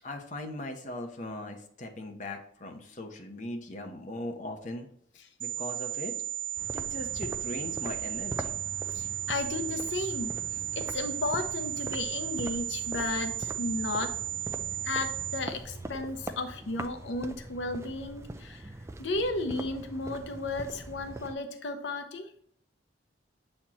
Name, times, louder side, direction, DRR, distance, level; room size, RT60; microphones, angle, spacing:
voice 1, 0.0-4.9 5.4-6.1 6.7-8.6, left 1 dB, 45° left, 3 dB, 0.8 m, -39 dB
sound 1, 5.4-15.4, right 11 dB, 80° right, 1.1 m, -35 dB
sound 2, 6.6-21.3, right 2 dB, 15° right, 0.4 m, -42 dB
voice 2, 8.9-14.1 14.8-22.3, left 2 dB, 80° left, 6 dB, 0.7 m, -34 dB
7.4 x 4.3 x 2.9 m, 0.67 s
head